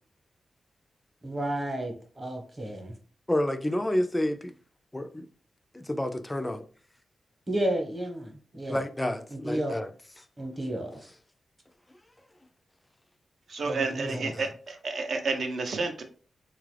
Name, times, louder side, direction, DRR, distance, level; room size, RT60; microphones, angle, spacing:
voice 1, 1.2-2.9 7.5-8.8 9.3-9.7 10.4-11.0 13.6-14.3, right 1 dB, 25° right, 0.9 m, -32 dB
voice 2, 3.3-4.5 4.9-5.3 5.7-6.6 8.7-9.9 10.2-10.3 14.0-14.5, left 1 dB, 10° left, 0.3 m, -29 dB
voice 3, 13.5-16.0, right 3 dB, 65° right, 0.6 m, -30 dB
4.1 x 2.4 x 3.1 m
wide cardioid pair, 135°, 0 cm